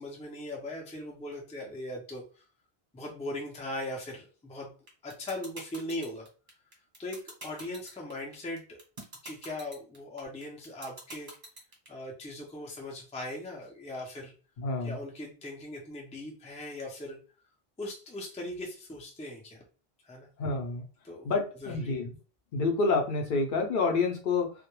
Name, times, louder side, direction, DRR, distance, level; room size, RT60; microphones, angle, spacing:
voice 1, 0.0-2.5 2.9-4.7 5.0-6.3 7.0-8.8 9.2-11.3 11.9-14.3 14.8-17.2 17.8-19.6 20.0-20.3 21.0-22.0, left 1 dB, 10° left, 0 dB, 0.3 m, -39 dB
sound 1, 4.9-11.9, right 1 dB, 35° right, 0.9 m, -44 dB
voice 2, 14.6-15.0 20.4-20.8 21.2-22.2 22.5-24.5, left 3 dB, 60° left, 3 dB, 0.7 m, -28 dB
2.2 x 2.1 x 2.9 m, 0.37 s
omnidirectional pair, 1.0 m